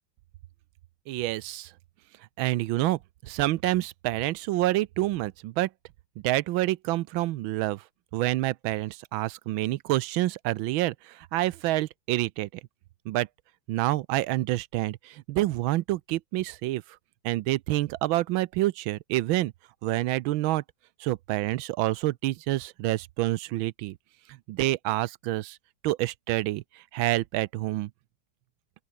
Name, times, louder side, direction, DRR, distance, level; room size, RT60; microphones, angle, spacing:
voice 1, 1.1-1.7 2.4-5.7 6.2-7.8 8.1-12.5 13.1-13.3 13.7-16.8 17.2-19.5 19.8-20.6 21.0-24.0 24.5-25.6 25.8-26.6 26.9-27.9, right 16 dB, 80° right, 1.4 m, -27 dB
open air
omnidirectional pair, 2.2 m